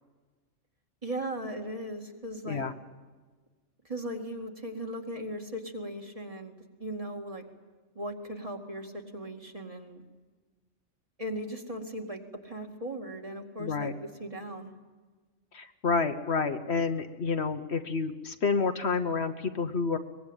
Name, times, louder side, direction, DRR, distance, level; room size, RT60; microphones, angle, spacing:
voice 1, 1.0-2.6 3.8-7.4 7.9-10.0 11.2-14.7, right 1 dB, 25° right, 2 dB, 2.4 m, -38 dB
voice 2, 13.6-13.9 15.5-20.0, left 4 dB, 60° left, 8 dB, 1.3 m, -29 dB
23.5 x 20.5 x 9.0 m, 1.4 s
omnidirectional pair, 1.3 m